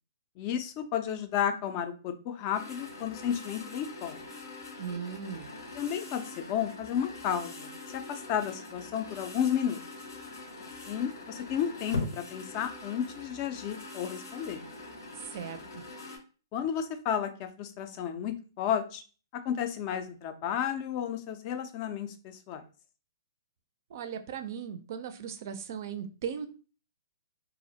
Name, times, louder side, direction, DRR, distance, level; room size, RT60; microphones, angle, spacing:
voice 1, 0.4-4.2 5.7-9.8 10.9-14.6 16.5-19.0 19.5-22.6, left 9 dB, 35° left, 7 dB, 0.3 m, -32 dB
sound 1, 2.5-16.2, left 2 dB, 85° left, 0.8 m, -42 dB
voice 2, 4.8-5.5 15.2-15.8 23.9-26.5, right 7 dB, 55° right, 9 dB, 0.3 m, -38 dB
2.4 x 2.0 x 2.7 m, 0.36 s
hypercardioid pair, 140°, 2 cm